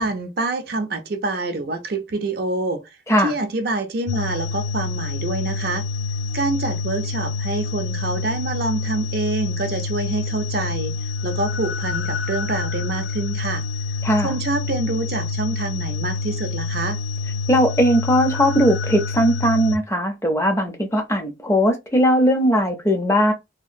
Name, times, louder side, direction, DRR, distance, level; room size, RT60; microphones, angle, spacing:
voice 1, 0.0-2.8 3.2-5.8 6.3-10.9 11.2-13.6 14.2-17.0, right 2 dB, 50° right, 0.4 m, -26 dB
sound 1, 4.1-19.8, left 3 dB, 75° left, 0.4 m, -27 dB
voice 2, 14.0-14.4 17.5-23.3, equal, 15° left, 0.5 m, -19 dB
2.8 x 2.4 x 2.5 m
head